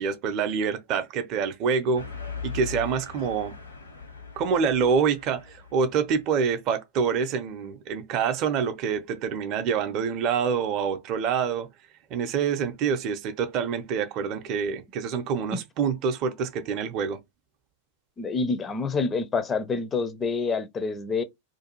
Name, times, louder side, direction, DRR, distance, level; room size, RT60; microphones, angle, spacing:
voice 1, 0.0-2.0 2.4-3.5 4.4-11.7 12.1-17.2, right 6 dB, 40° right, 0.5 m, -26 dB
sound 1, 1.9-6.1, left 5 dB, 80° left, 0.9 m, -39 dB
voice 2, 18.2-21.2, left 4 dB, 20° left, 0.4 m, -27 dB
2.5 x 2.2 x 2.9 m
figure-of-eight pair, 90°, 0 cm